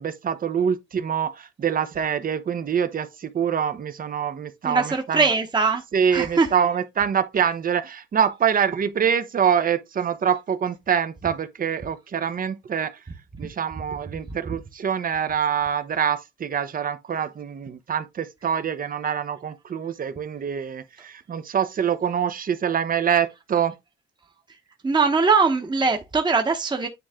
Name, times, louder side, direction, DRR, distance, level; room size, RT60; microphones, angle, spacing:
voice 1, 0.0-5.3 5.9-12.9 13.4-23.7, right 8 dB, 45° right, 0.9 m, -25 dB
voice 2, 4.6-5.8 6.1-6.5 24.8-26.9, right 4 dB, 20° right, 1.1 m, -21 dB
9.2 x 3.2 x 3.7 m
cardioid pair, 90°, 20 cm